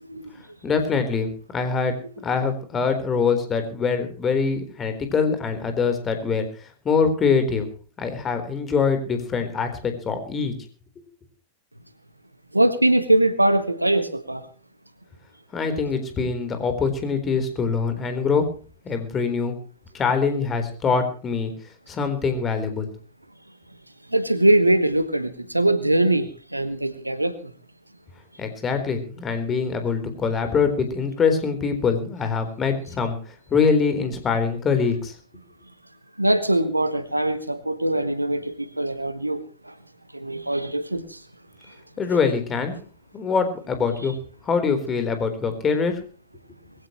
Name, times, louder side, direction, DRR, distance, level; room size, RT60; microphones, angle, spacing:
voice 1, 0.6-2.0 2.2-6.5 6.8-7.7 8.0-10.5 11.0-11.1 15.5-18.5 18.8-19.6 19.9-21.5 21.9-22.9 28.4-35.1 42.0-42.8 43.1-44.2 44.4-46.0, left 5 dB, 25° left, 8 dB, 4.0 m, -24 dB
voice 2, 12.5-14.5 24.1-27.5 36.2-39.7 40.1-41.2, right 1 dB, 85° right, 13 dB, 1.4 m, -22 dB
22.0 x 16.0 x 3.1 m, 0.38 s
figure-of-eight pair, 90°, 0 cm